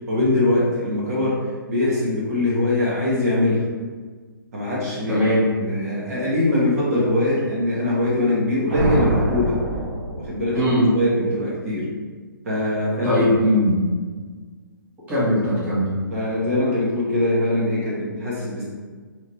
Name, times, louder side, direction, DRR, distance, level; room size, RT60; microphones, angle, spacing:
voice 1, 0.1-3.7 4.5-5.2 5.6-9.6 10.2-11.9 12.4-13.2 16.1-18.6, left 1 dB, 40° right, -6 dB, 1.2 m, -22 dB
voice 2, 5.1-5.5 10.5-10.9 13.0-13.8 15.1-16.0, equal, 15° right, -9 dB, 1.3 m, -19 dB
sound 1, 8.7-10.7, right 1 dB, 65° right, 1.0 m, -24 dB
4.7 x 3.1 x 3.1 m, 1.5 s
figure-of-eight pair, 130°, 12 cm